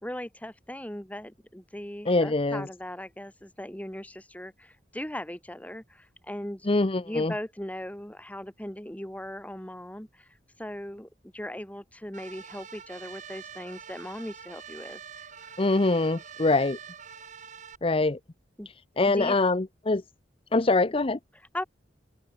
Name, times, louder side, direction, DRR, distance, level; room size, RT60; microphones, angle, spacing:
voice 1, 0.0-6.7 7.0-10.3 10.6-15.6 18.6-18.7 19.1-19.4 21.5-21.6, left 1 dB, 10° left, 3.0 m, -39 dB
voice 2, 2.1-2.7 6.7-7.3 15.6-16.8 17.8-18.2 19.0-20.0 20.5-21.2, left 2 dB, 30° left, 0.7 m, -24 dB
sound 1, 12.1-17.8, right 7 dB, 45° right, 2.7 m, -45 dB
open air
head